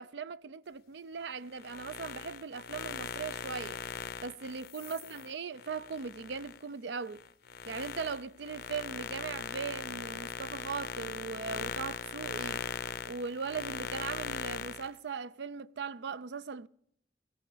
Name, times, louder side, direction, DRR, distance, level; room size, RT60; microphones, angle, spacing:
voice 1, 0.0-3.8 4.2-7.2 7.7-12.6 13.1-16.7, right 5 dB, 80° right, 0.5 m, -39 dB
sound 1, 1.5-6.6 7.1-14.9, left 6 dB, 60° left, 0.5 m, -40 dB
20.5 x 16.5 x 3.4 m
head